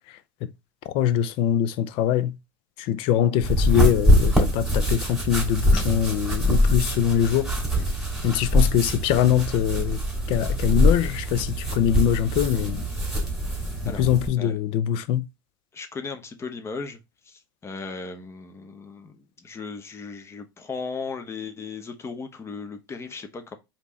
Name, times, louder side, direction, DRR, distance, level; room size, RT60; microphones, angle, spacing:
voice 1, 0.1-0.5 0.8-2.3 2.8-7.5 8.2-10.0 10.3-12.9 13.8-15.2, left 10 dB, 50° left, 0.5 m, -23 dB
sound 1, 3.4-14.3, equal, 5° right, 2.4 m, -23 dB
voice 2, 15.7-17.0 17.2-23.6, left 4 dB, 25° left, 0.9 m, -36 dB
5.0 x 2.9 x 3.1 m
hypercardioid pair, 80°, 12 cm